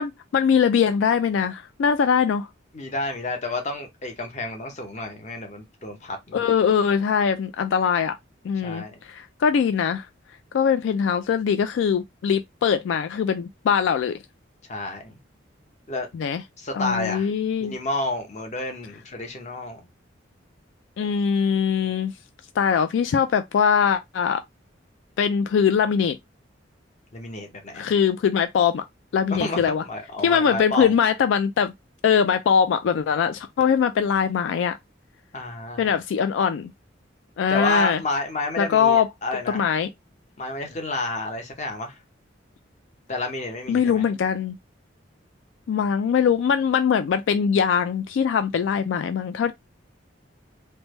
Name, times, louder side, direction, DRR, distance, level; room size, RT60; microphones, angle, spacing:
voice 1, 0.0-2.5 6.3-8.2 8.4-10.1 10.5-14.2 16.1-16.4 16.7-17.7 21.0-22.1 22.6-24.4 25.2-26.2 27.7-28.8 29.1-29.8 30.2-31.7 32.0-34.8 35.8-36.7 37.4-38.0 38.6-39.1 39.5-39.9 43.7-44.5 45.7-49.5, left 7 dB, 75° left, 0.3 m, -22 dB
voice 2, 2.7-6.4 8.6-9.0 14.7-15.2 15.9-16.1 16.6-17.3 17.6-19.9 27.1-27.8 29.3-30.9 35.3-35.9 37.5-39.7 40.4-42.0 43.1-44.0, left 2 dB, 35° left, 0.7 m, -30 dB
3.3 x 2.1 x 3.0 m
head